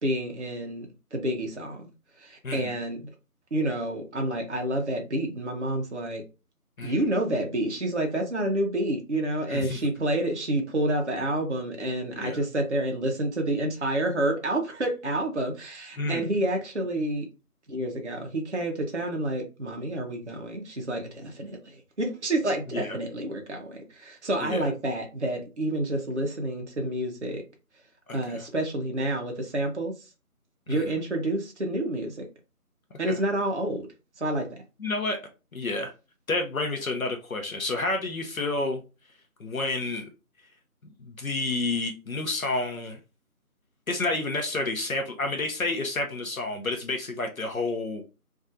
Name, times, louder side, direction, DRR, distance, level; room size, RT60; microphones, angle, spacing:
voice 1, 0.0-1.9 2.2-3.1 3.5-6.2 6.8-17.3 17.7-27.4 28.1-29.9 30.7-32.3 33.0-33.9 34.2-34.6, right 1 dB, 50° right, 2 dB, 0.5 m, -29 dB
voice 2, 2.4-2.8 6.8-7.0 9.5-9.8 12.2-12.4 16.0-16.3 22.7-23.0 24.4-24.6 28.1-28.4 30.7-30.9 33.1-33.2 34.8-35.2 35.5-35.9 36.3-38.8 39.4-40.1 41.0-43.0 43.9-48.0, left 2 dB, 65° left, 4 dB, 0.6 m, -30 dB
2.6 x 2.3 x 2.5 m, 0.30 s
figure-of-eight pair, 175°, 45 cm